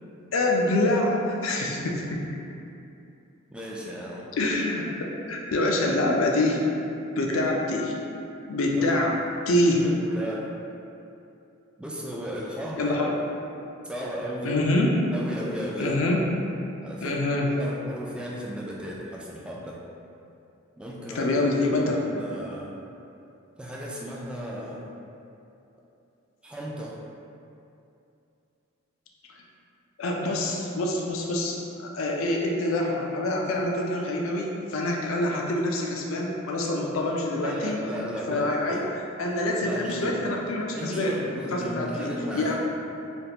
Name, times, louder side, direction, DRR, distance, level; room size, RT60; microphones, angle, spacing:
voice 1, 0.3-2.2 4.4-6.6 7.2-7.9 8.5-9.1 9.5-9.9 12.8-13.2 14.4-14.9 15.8-16.2 17.0-17.5 21.1-22.0 30.0-37.8 38.3-38.8 39.2-41.2 41.5-42.5, left 1 dB, 75° left, -1 dB, 0.4 m, -26 dB
voice 2, 3.5-4.3 8.8-9.0 9.8-10.5 11.8-12.9 13.8-14.6 15.1-15.9 16.8-19.8 20.8-21.3 21.8-22.8 23.6-24.8 26.4-27.0 37.3-38.8 39.6-40.2 40.7-42.5, equal, 5° right, -4 dB, 0.3 m, -35 dB
3.4 x 2.4 x 2.8 m, 2.7 s
head